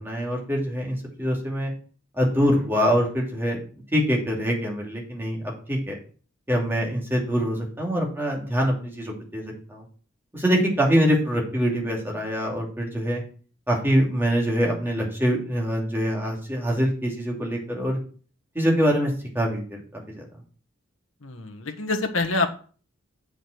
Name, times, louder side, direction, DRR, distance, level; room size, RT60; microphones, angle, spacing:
voice 1, 0.0-1.7 2.2-3.6 3.9-6.0 6.5-9.8 10.3-13.2 13.7-18.0 18.5-19.8 20.1-20.2, equal, 10° right, -2 dB, 2.6 m, -24 dB
voice 2, 21.2-22.5, left 3 dB, 85° left, 3 dB, 1.3 m, -26 dB
7.8 x 5.1 x 6.5 m, 0.41 s
head